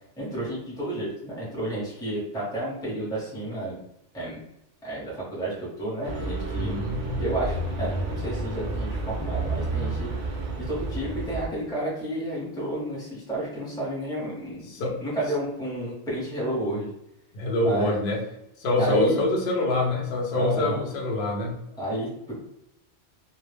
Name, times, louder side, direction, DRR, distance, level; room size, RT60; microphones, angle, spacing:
voice 1, 0.2-3.8 4.1-4.4 4.8-6.7 7.2-10.1 10.6-16.9 17.6-17.9 18.8-19.2 20.3-20.8 21.8-22.3, right 1 dB, 5° left, -6 dB, 0.8 m, -31 dB
sound 1, 6.0-11.5, right 2 dB, 55° right, 0.6 m, -30 dB
voice 2, 6.5-7.2 14.7-15.0 17.3-18.2 18.6-21.6, left 2 dB, 60° left, -1 dB, 0.7 m, -25 dB
2.2 x 2.0 x 3.2 m, 0.86 s
omnidirectional pair, 1.1 m